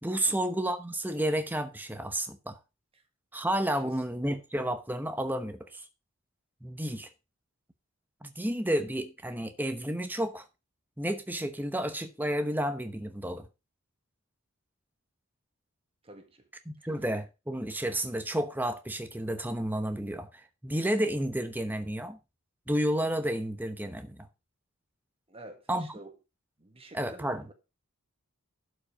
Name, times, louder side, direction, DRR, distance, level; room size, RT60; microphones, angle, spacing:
voice 1, 0.0-2.6 3.3-5.9 6.6-7.1 8.2-10.4 11.0-13.5 16.7-22.2 22.7-24.3 25.7-25.9 26.9-27.4, right 1 dB, 10° right, 0.9 m, -31 dB
voice 2, 3.7-4.0 16.0-16.5 16.8-17.0 25.3-26.2 26.6-27.5, right 2 dB, 25° right, 1.5 m, -50 dB
11.5 x 5.3 x 4.9 m
head